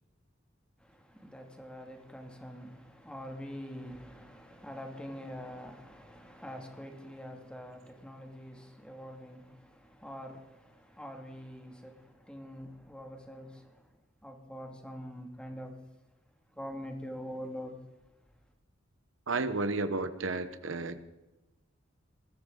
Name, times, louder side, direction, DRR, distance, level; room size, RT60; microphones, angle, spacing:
voice 1, 0.8-13.9 14.2-15.7 16.6-17.7, equal, 5° left, 2.4 m, -45 dB
voice 2, 19.3-21.0, right 3 dB, 80° right, 1.1 m, -32 dB
20.5 x 15.0 x 3.9 m
head